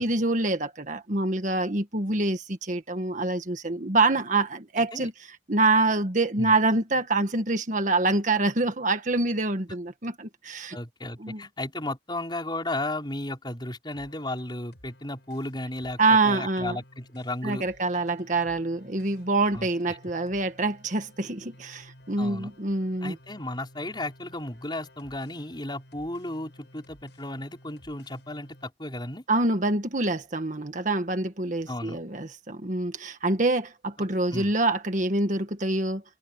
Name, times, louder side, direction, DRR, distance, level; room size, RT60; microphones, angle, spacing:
voice 1, 0.0-10.8 11.2-11.4 16.0-16.8 17.4-23.1 29.3-36.0, right 2 dB, 45° right, 1.6 m, -26 dB
voice 2, 4.8-5.1 6.4-6.5 10.7-16.0 16.2-17.7 19.5-20.0 22.2-22.5 23.0-29.2 31.7-32.0 34.0-34.5, left 1 dB, 25° left, 5.5 m, -34 dB
sound 1, 13.9-28.7, left 1 dB, 80° left, 6.1 m, -54 dB
head